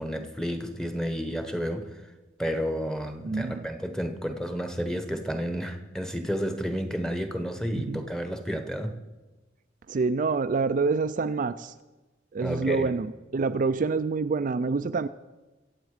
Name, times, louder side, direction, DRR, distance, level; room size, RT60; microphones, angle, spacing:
voice 1, 0.0-2.0 2.4-8.9 12.4-12.9, equal, 5° left, 7 dB, 1.1 m, -31 dB
voice 2, 3.2-3.7 7.7-8.0 9.9-11.7 12.3-15.1, right 4 dB, 45° right, 10 dB, 0.4 m, -27 dB
23.5 x 8.2 x 4.9 m, 1.1 s
head